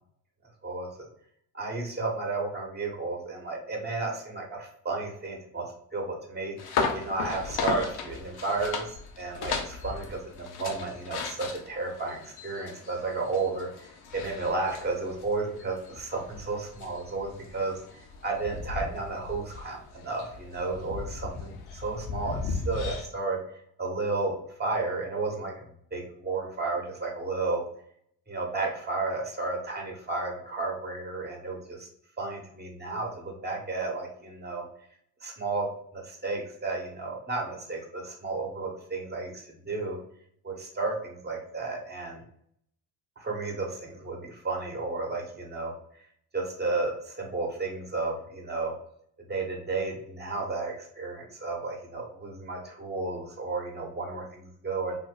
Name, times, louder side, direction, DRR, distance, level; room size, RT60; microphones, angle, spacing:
voice 1, 0.6-1.1 1.5-5.7 5.9-13.9 14.1-17.8 18.2-23.4 23.8-24.3 24.6-25.6 25.9-27.6 28.3-31.9 32.2-34.6 35.2-40.0 40.4-42.2 43.2-45.7 46.3-48.7 49.2-55.0, right 3 dB, 20° right, 1 dB, 1.1 m, -33 dB
sound 1, 6.6-23.1, left 4 dB, 55° left, 0.7 m, -36 dB
2.6 x 2.1 x 3.9 m, 0.67 s
hypercardioid pair, 55°, 45 cm